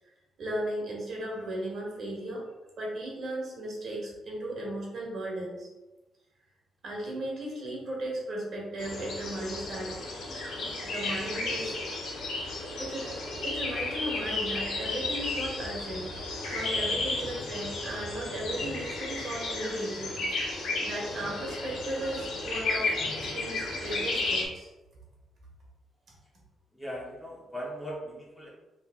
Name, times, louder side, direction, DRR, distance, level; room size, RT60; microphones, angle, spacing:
voice 1, 0.4-2.4 2.8-5.7 6.8-9.9 10.8-12.0 12.8-13.2 13.4-20.2 20.8-22.9 23.2-24.7, right 1 dB, 50° right, -3 dB, 1.1 m, -36 dB
sound 1, 8.8-24.5, left 2 dB, 75° left, 0.8 m, -33 dB
voice 2, 26.7-28.5, equal, 5° left, -4 dB, 0.5 m, -39 dB
3.1 x 2.6 x 3.5 m, 1.1 s
cardioid pair, 165°, 0 cm